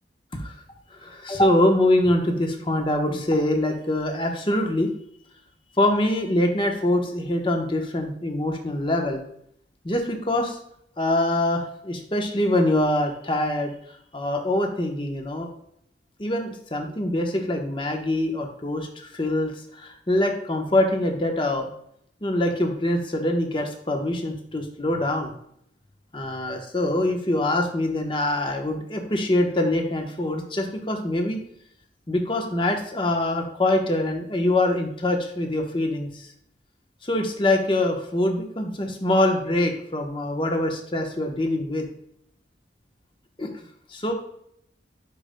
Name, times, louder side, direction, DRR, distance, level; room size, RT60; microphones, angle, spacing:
voice 1, 0.9-4.9 5.8-9.2 9.8-10.6 11.0-13.7 14.1-15.5 16.2-21.7 22.2-25.3 26.1-31.4 32.1-36.3 37.0-41.9 43.4-43.5 43.9-44.1, left 1 dB, 30° left, 3 dB, 1.0 m, -24 dB
10.5 x 5.1 x 2.2 m, 0.71 s
head